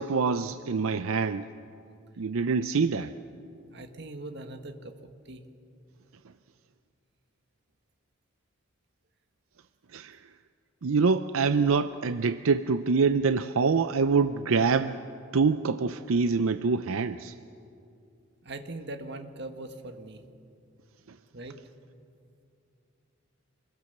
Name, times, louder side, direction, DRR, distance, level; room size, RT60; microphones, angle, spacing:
voice 1, 0.0-1.5 2.2-3.1 9.9-10.2 10.8-15.0 15.3-17.4, right 4 dB, 80° right, 11 dB, 0.5 m, -25 dB
voice 2, 3.7-4.9 5.2-5.4 18.4-20.2 21.3-21.6, right 2 dB, 55° right, 7 dB, 1.5 m, -41 dB
27.0 x 21.5 x 6.7 m, 2.6 s
head